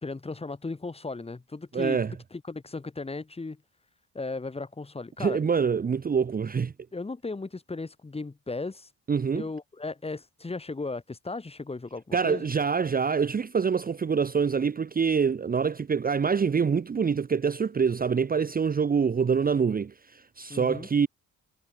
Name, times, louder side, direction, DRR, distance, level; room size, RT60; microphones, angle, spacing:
voice 1, 0.0-3.6 4.1-5.4 6.9-8.9 9.3-12.5 20.5-20.9, left 3 dB, 20° left, 2.0 m, -36 dB
voice 2, 1.7-2.1 5.2-6.7 9.1-9.4 12.1-21.1, right 6 dB, 25° right, 0.8 m, -25 dB
cardioid pair, 100°, 33 cm